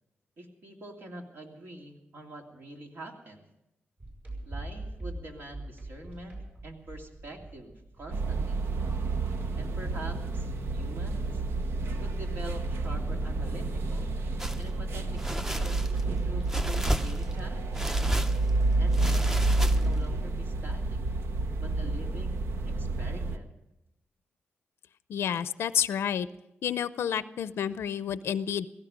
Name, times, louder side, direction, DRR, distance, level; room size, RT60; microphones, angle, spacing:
voice 1, 0.4-3.5 4.4-8.6 9.5-11.3 12.0-14.1 14.6-17.9 18.8-21.0 21.6-23.5, right 1 dB, 65° right, 2 dB, 2.8 m, -45 dB
sound 1, 4.0-10.8, right 2 dB, 45° right, 7.2 m, -43 dB
sound 2, 8.1-23.4, right 2 dB, 85° right, 0.9 m, -29 dB
sound 3, 14.4-14.6 15.2-16.0 16.5-17.4 17.7-18.5 18.9-20.1, equal, 10° right, 0.6 m, -33 dB
voice 2, 25.1-26.3 26.6-28.7, left 8 dB, 85° left, 14 dB, 0.5 m, -30 dB
17.5 x 16.0 x 5.1 m, 0.90 s
cardioid pair, 105°, 4 cm